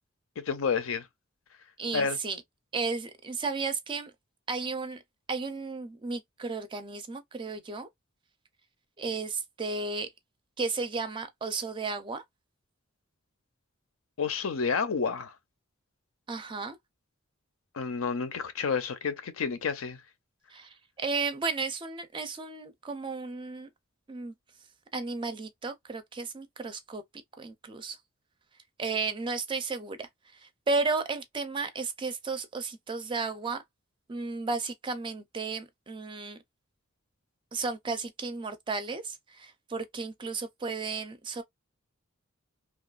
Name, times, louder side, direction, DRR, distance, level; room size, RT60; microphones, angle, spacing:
voice 1, 0.4-1.1 1.9-2.2 14.2-15.3 17.7-20.0, left 5 dB, 85° left, 0.5 m, -30 dB
voice 2, 1.8-2.4 2.7-4.1 4.5-5.0 5.3-7.9 9.0-10.1 10.6-12.2 16.3-16.8 20.5-23.7 24.1-24.3 24.9-27.0 27.4-28.0 28.8-33.6 34.1-36.4 37.5-41.4, right 4 dB, 25° right, 0.4 m, -34 dB
2.9 x 2.2 x 2.3 m
head